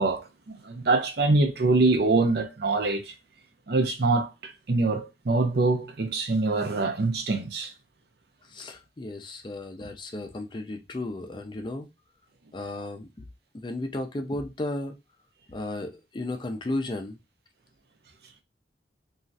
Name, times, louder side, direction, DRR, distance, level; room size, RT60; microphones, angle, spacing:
voice 1, 0.0-3.1 3.7-7.7, right 3 dB, 60° right, 0.6 m, -24 dB
voice 2, 8.5-11.9 12.5-13.1 13.5-15.0 15.5-17.2, left 2 dB, 25° left, 0.4 m, -34 dB
3.1 x 2.4 x 2.6 m
head